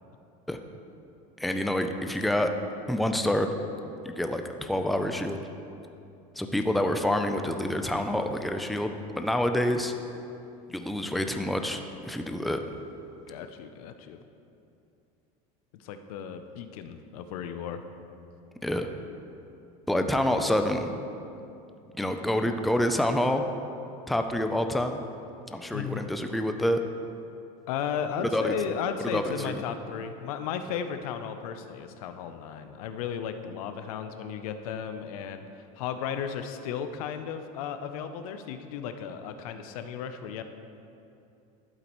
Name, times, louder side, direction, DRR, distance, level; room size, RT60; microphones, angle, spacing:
voice 1, 1.4-2.5 2.9-3.5 4.0-5.4 6.4-9.9 10.7-12.6 18.6-18.9 19.9-20.9 21.9-23.4 24.1-25.0 25.5-26.8 28.2-28.5 29.0-29.6, left 1 dB, ahead, 6 dB, 0.4 m, -27 dB
voice 2, 13.3-14.2 15.8-17.8 25.7-26.1 27.7-40.4, left 7 dB, 85° left, 9 dB, 0.6 m, -35 dB
11.5 x 7.9 x 3.1 m, 2.7 s
supercardioid pair, 120°, 18 cm